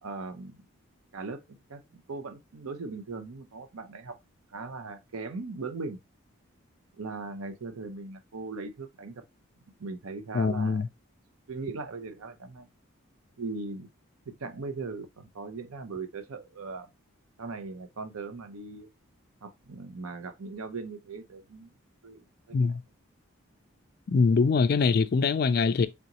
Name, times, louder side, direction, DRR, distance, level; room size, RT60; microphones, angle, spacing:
voice 1, 0.0-0.6 1.1-1.4 1.7-4.2 4.5-6.0 7.0-9.2 9.8-10.8 11.5-12.7 13.4-13.9 14.3-16.9 17.4-18.9 19.4-21.7 22.0-22.8, right 3 dB, 85° right, 0.6 m, -39 dB
voice 2, 10.3-10.9 22.5-22.8 24.1-25.9, left 4 dB, 45° left, 0.3 m, -23 dB
3.9 x 3.4 x 2.9 m
head